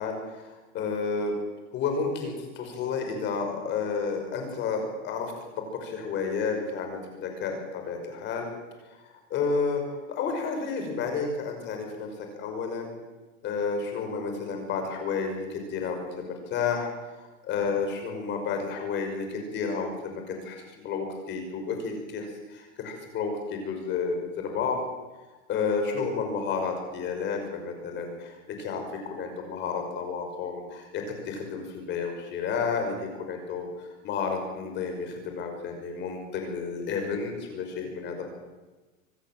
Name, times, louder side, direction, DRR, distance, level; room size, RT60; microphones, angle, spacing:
voice 1, 0.0-1.4 1.7-8.5 9.3-9.8 10.1-13.0 13.4-16.9 17.4-22.3 22.5-24.8 25.5-33.7 34.0-38.3, left 5 dB, 25° left, 4 dB, 5.5 m, -31 dB
25.0 x 13.0 x 9.2 m, 1.2 s
supercardioid pair, 160°, 40 cm